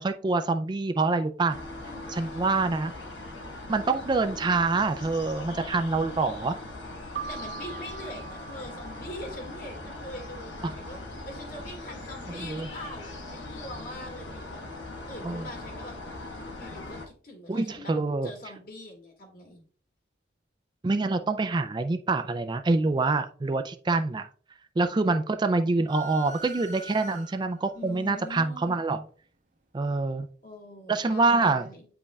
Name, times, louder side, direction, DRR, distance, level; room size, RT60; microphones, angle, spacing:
voice 1, 0.0-1.6 2.1-2.9 3.7-6.6 10.6-10.7 12.4-12.7 15.2-15.4 17.5-18.3 20.8-24.3 24.8-29.0 29.7-30.3 30.9-31.7, right 3 dB, 25° right, 8 dB, 0.3 m, -26 dB
sound 1, 1.5-17.1, left 2 dB, 75° left, 1.1 m, -40 dB
voice 2, 1.9-2.6 7.3-11.0 11.3-14.6 15.1-16.0 16.6-17.9 18.2-19.6 27.7-28.8 30.4-31.9, left 1 dB, 50° left, 2 dB, 1.9 m, -43 dB
Keyboard (musical), 7.2-9.7, right 7 dB, 70° right, 0.8 m, -41 dB
sound 2, 25.9-27.7, right 3 dB, 40° right, 0.7 m, -43 dB
8.4 x 5.2 x 2.3 m, 0.42 s
head